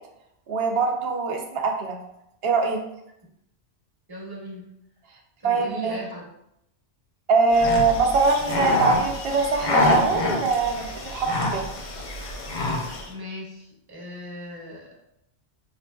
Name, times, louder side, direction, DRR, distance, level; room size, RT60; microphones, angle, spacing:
voice 1, 0.5-2.0 2.4-2.8 5.4-6.0 7.3-11.6, right 4 dB, 70° right, 2 dB, 0.8 m, -22 dB
voice 2, 4.1-4.7 5.4-6.2 13.1-15.1, equal, 25° right, -4 dB, 0.9 m, -38 dB
sound 1, 7.5-13.1, left 2 dB, 55° left, 0.6 m, -26 dB
5.0 x 2.6 x 2.2 m, 0.80 s
omnidirectional pair, 1.1 m